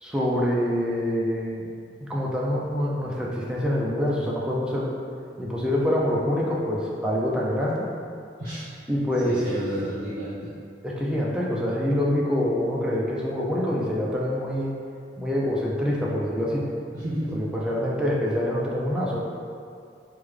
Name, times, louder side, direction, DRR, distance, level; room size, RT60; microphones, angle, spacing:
voice 1, 0.0-1.6 2.1-4.9 5.4-7.9 8.9-9.4 10.8-14.7 15.2-16.6 17.3-19.2, equal, 5° right, -5 dB, 0.3 m, -25 dB
voice 2, 9.2-10.5 16.9-17.5, right 1 dB, 55° right, -12 dB, 0.7 m, -31 dB
3.5 x 2.2 x 3.1 m, 2.4 s
head